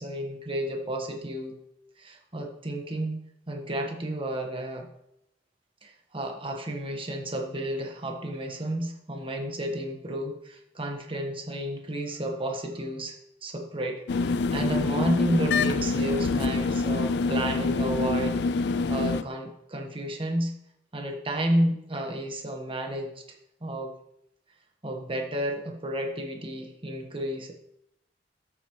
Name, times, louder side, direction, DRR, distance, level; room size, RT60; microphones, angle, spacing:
voice 1, 0.0-1.6 2.0-3.2 3.5-4.9 5.8-18.4 18.9-20.5 20.9-23.2 23.6-23.9 24.8-27.5, right 1 dB, 30° right, 3 dB, 1.4 m, -31 dB
sound 1, 14.1-19.2, left 3 dB, 65° left, 0.4 m, -26 dB
13.0 x 8.1 x 3.1 m, 0.78 s
head